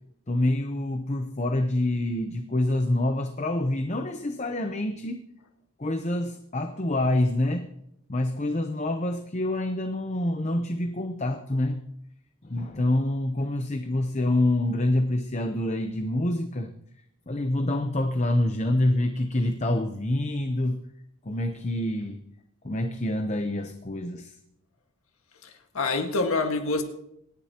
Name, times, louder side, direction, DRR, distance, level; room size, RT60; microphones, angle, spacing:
voice 1, 0.3-5.2 5.8-7.7 8.1-11.8 12.4-16.7 17.3-20.8 21.2-22.2 22.6-24.4, left 1 dB, 30° left, 0.8 m, -26 dB
voice 2, 25.4-26.8, left 3 dB, 85° left, 1.7 m, -26 dB
27.0 x 10.5 x 3.0 m
head